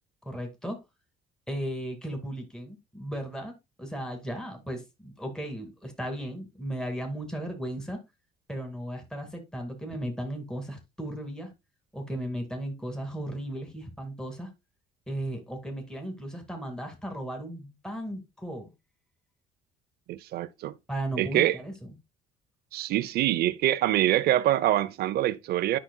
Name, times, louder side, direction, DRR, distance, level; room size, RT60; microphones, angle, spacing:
voice 1, 0.3-0.8 1.5-3.5 3.8-8.0 8.5-11.5 11.9-14.5 15.1-18.7 20.9-21.9, right 1 dB, 5° left, 2.1 m, -36 dB
voice 2, 20.1-20.8 21.2-21.6 22.7-25.8, right 13 dB, 70° right, 0.6 m, -25 dB
10.0 x 5.9 x 2.2 m
cardioid pair, 110°, 17 cm